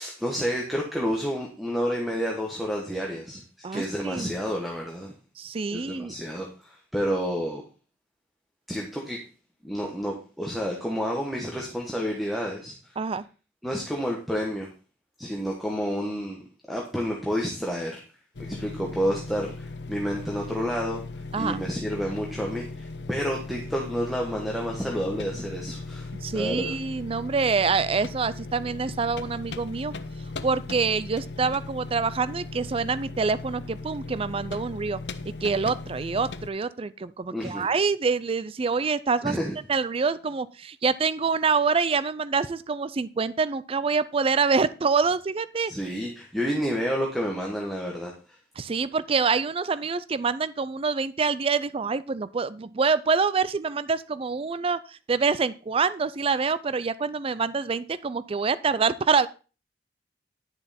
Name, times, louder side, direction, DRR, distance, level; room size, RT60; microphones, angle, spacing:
voice 1, 0.0-3.4 3.7-5.2 5.7-7.6 8.7-9.2 9.6-12.7 13.6-14.7 15.2-16.4 16.7-18.0 18.4-21.0 21.4-26.7 37.3-37.7 39.2-39.5 45.7-48.4, equal, ahead, -1 dB, 1.4 m, -30 dB
voice 2, 3.6-4.3 5.4-6.1 13.0-13.2 21.3-21.6 26.2-29.9 30.4-35.0 35.3-39.4 39.7-45.7 48.6-59.3, right 5 dB, 35° right, 16 dB, 0.4 m, -26 dB
sound 1, 18.3-36.5, left 3 dB, 75° left, 0.8 m, -38 dB
10.5 x 6.8 x 4.3 m, 0.33 s
head